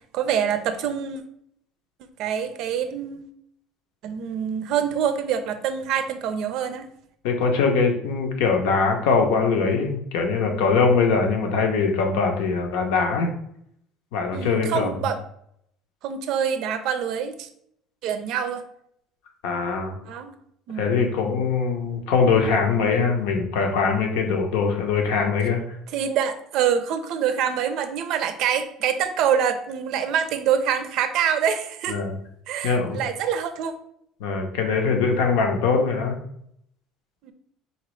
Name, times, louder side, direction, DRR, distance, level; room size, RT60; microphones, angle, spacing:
voice 1, 0.1-1.2 2.2-3.2 4.0-6.9 14.3-15.2 16.0-17.5 18.0-18.6 20.1-20.3 20.7-21.1 25.9-32.0 32.5-33.7 37.2-37.3, right 8 dB, 65° right, 10 dB, 0.4 m, -25 dB
voice 2, 7.2-13.3 14.1-15.1 19.4-20.0 20.8-25.8 31.9-32.2 32.6-33.0 34.2-36.2, left 5 dB, 85° left, 3 dB, 0.7 m, -22 dB
3.9 x 2.9 x 3.1 m, 0.72 s
cardioid pair, 135°, 0 cm